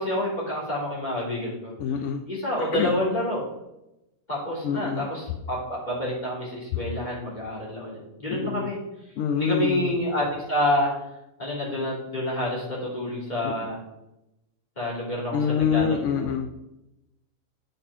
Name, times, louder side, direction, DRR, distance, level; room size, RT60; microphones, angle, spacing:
voice 1, 0.0-1.7 2.3-3.4 4.3-8.8 9.4-11.0 11.4-13.8 14.8-16.3, left 1 dB, 30° left, -6 dB, 3.1 m, -28 dB
voice 2, 1.8-2.2 2.7-2.9 4.6-5.1 8.3-8.7 9.2-9.9 13.4-13.6 15.3-16.5, left 7 dB, 65° left, 6 dB, 0.8 m, -26 dB
8.4 x 5.4 x 4.8 m, 0.92 s
omnidirectional pair, 1.5 m